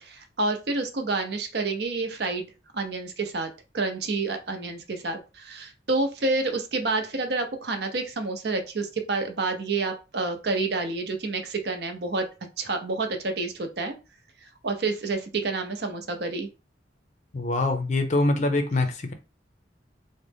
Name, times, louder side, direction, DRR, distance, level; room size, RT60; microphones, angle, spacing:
voice 1, 0.0-2.5 2.7-12.3 12.6-13.9 14.4-16.5, right 3 dB, 60° right, 0.6 m, -29 dB
voice 2, 17.3-19.1, left 2 dB, 40° left, 0.5 m, -24 dB
3.9 x 2.1 x 3.3 m
head